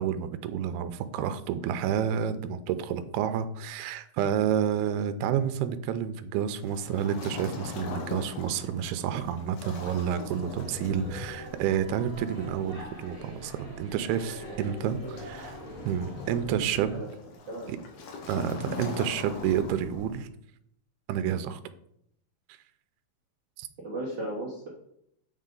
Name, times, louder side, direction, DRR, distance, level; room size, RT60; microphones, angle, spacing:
voice 1, 0.0-15.6 15.9-17.0 17.7-17.8 18.3-20.3 21.1-21.6 23.6-23.7, right 9 dB, 90° right, 11 dB, 2.5 m, -29 dB
Waves surf, 6.6-20.3, left 4 dB, 85° left, 1.4 m, -42 dB
sound 1, 10.4-17.0, equal, 15° left, 2.1 m, -44 dB
voice 2, 14.5-15.1 16.9-17.1 17.5-17.7 23.8-24.7, right 1 dB, 60° right, -5 dB, 1.1 m, -37 dB
7.9 x 5.4 x 3.8 m, 0.73 s
omnidirectional pair, 4.5 m